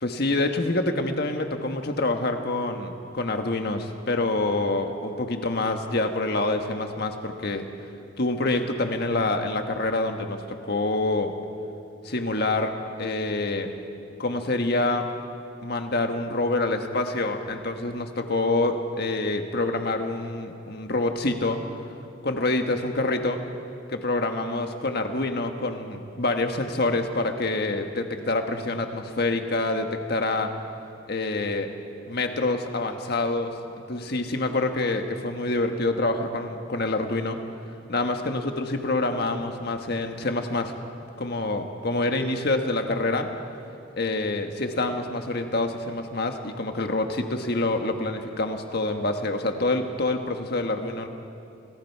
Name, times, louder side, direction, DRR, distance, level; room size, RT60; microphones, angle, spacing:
voice 1, 0.0-7.7 8.2-11.3 12.0-13.7 14.2-15.1 15.6-21.6 22.2-23.4 23.9-30.5 31.1-31.7 32.1-33.6 33.9-37.4 37.9-40.7 41.2-43.3 44.0-51.1, left 2 dB, 55° left, 5 dB, 1.5 m, -26 dB
28.0 x 20.5 x 4.7 m, 2.6 s
head